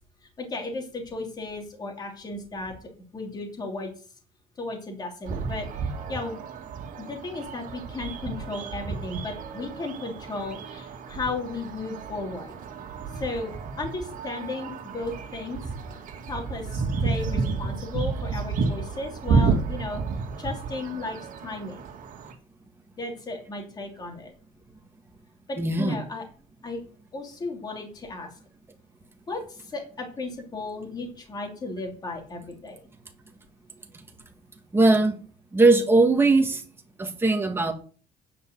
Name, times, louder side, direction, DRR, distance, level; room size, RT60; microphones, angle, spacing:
voice 1, 0.4-2.7 3.1-3.9 4.6-6.4 7.0-12.6 13.1-15.6 15.9-16.0 16.3-16.7 17.0-20.0 20.4-21.9 23.0-24.3 25.5-26.2 26.6-26.8 27.1-28.3 29.3-32.7, left 3 dB, 25° left, 2 dB, 2.8 m, -35 dB
sound 1, 5.3-22.3, right 4 dB, 55° right, 2.4 m, -31 dB
voice 2, 25.6-26.0 34.7-35.1 35.5-36.6 37.0-37.7, right 3 dB, 15° right, 4 dB, 1.8 m, -20 dB
9.4 x 5.3 x 8.0 m, 0.39 s
cardioid pair, 145°, 16 cm